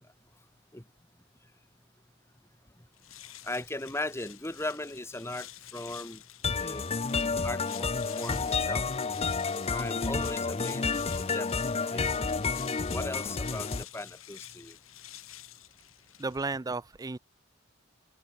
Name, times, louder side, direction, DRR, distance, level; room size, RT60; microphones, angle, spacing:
sound 1, 2.9-16.6, left 13 dB, 85° left, 4.3 m, -49 dB
voice 1, 3.4-6.2 6.6-6.8 7.4-8.9 9.7-10.9 11.2-12.3 12.9-14.8, left 2 dB, 15° left, 2.0 m, -38 dB
sound 2, 6.4-13.8, left 4 dB, 30° left, 0.7 m, -30 dB
voice 2, 16.2-17.2, right 3 dB, 20° right, 0.4 m, -33 dB
open air
head